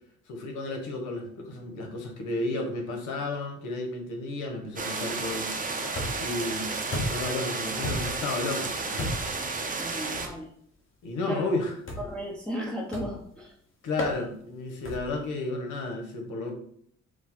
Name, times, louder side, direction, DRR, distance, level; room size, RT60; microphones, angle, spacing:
voice 1, 0.3-6.7 7.1-9.1 11.0-11.7 13.8-16.5, left 2 dB, 85° left, 3 dB, 1.1 m, -33 dB
sound 1, 4.8-10.3, right 3 dB, 30° right, 0.8 m, -32 dB
sound 2, 5.9-6.4 6.9-7.4 7.8-8.3 9.0-9.4 10.1-10.3 11.9-12.2 12.9-13.3 14.0-14.2 14.8-15.2, left 1 dB, 45° left, 1.4 m, -33 dB
voice 2, 9.8-10.5 11.3-11.6 12.0-13.5, equal, 5° left, -2 dB, 0.8 m, -35 dB
5.0 x 2.2 x 4.2 m, 0.63 s
cardioid pair, 90°, 30 cm